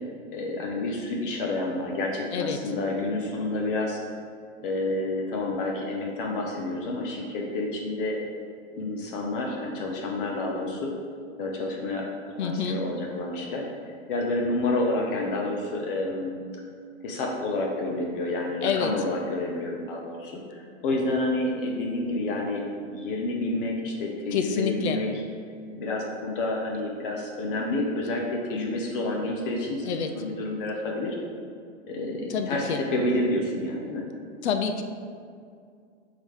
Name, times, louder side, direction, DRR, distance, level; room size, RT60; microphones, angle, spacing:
voice 1, 0.3-4.0 4.6-8.2 8.8-10.9 11.4-12.1 12.4-13.7 14.1-16.3 17.0-25.1 25.7-29.9 30.1-31.2 31.9-34.1, left 2 dB, 45° left, 0 dB, 0.9 m, -29 dB
voice 2, 12.4-12.8 18.6-18.9 24.3-25.0 29.9-30.1 32.3-32.8 34.4-34.8, left 6 dB, 65° left, 6 dB, 0.6 m, -27 dB
5.1 x 3.8 x 4.8 m, 2.2 s
hypercardioid pair, 150°, 36 cm